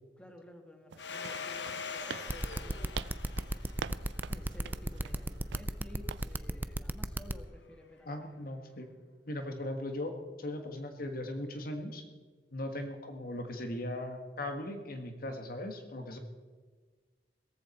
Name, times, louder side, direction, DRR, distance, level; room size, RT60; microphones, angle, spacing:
voice 1, 0.2-3.0 3.6-3.7 4.3-8.4, left 1 dB, 5° left, 4 dB, 1.5 m, -53 dB
sound 1, 0.9-5.7 6.1-6.3, right 7 dB, 80° right, 0.4 m, -45 dB
Domestic sounds home sounds, 1.0-5.4, left 5 dB, 80° left, 1.3 m, -43 dB
sound 2, 2.3-7.3, right 1 dB, 10° right, 0.5 m, -34 dB
voice 2, 8.1-8.9 9.3-10.1 10.4-12.0 12.5-16.2, left 1 dB, 55° left, 5 dB, 1.5 m, -38 dB
17.0 x 14.5 x 4.2 m, 1.5 s
head